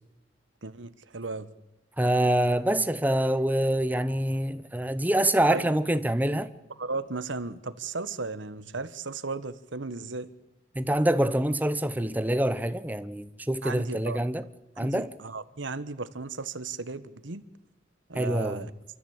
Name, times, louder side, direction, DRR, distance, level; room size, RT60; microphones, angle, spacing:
voice 1, 0.6-1.5 5.5-5.7 6.8-10.3 13.6-14.2 14.8-17.4 18.1-18.7, right 3 dB, 85° right, 1.2 m, -35 dB
voice 2, 2.0-6.5 10.7-14.4 14.8-15.1 18.1-18.7, right 1 dB, 10° right, 0.9 m, -25 dB
27.0 x 14.0 x 8.8 m
head